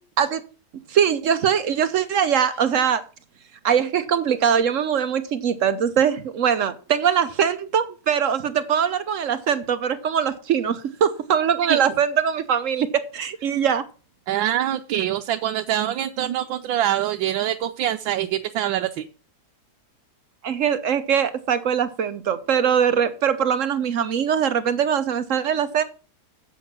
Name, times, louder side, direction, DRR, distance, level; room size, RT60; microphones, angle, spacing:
voice 1, 0.9-3.0 3.6-13.8 20.4-25.8, right 8 dB, 65° right, 0.8 m, -22 dB
voice 2, 14.3-19.1, right 12 dB, 85° right, 1.4 m, -24 dB
8.2 x 6.4 x 5.9 m
omnidirectional pair, 2.1 m